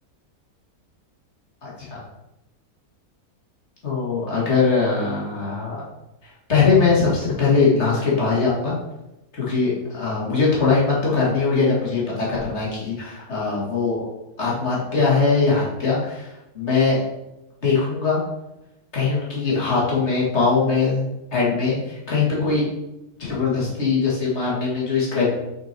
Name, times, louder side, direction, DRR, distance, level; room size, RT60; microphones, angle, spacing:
voice 1, 1.6-2.0 3.8-5.8 6.5-8.7 9.3-14.1 14.4-17.0 17.6-18.2 18.9-21.0 21.3-22.6 23.2-25.3, left 4 dB, 45° left, -5 dB, 2.3 m, -21 dB
5.8 x 5.4 x 4.4 m, 0.96 s
omnidirectional pair, 1.6 m